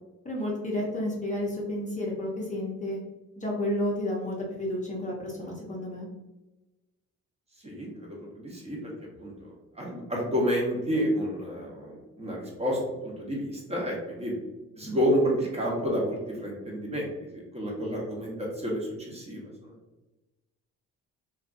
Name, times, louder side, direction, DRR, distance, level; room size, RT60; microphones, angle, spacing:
voice 1, 0.2-3.0 3.4-6.1, left 1 dB, 25° left, -4 dB, 0.6 m, -31 dB
voice 2, 7.6-8.8 9.2-14.3 14.8-19.7, equal, 20° right, -3 dB, 0.8 m, -30 dB
2.5 x 2.3 x 2.5 m, 1.1 s
cardioid pair, 90°, 30 cm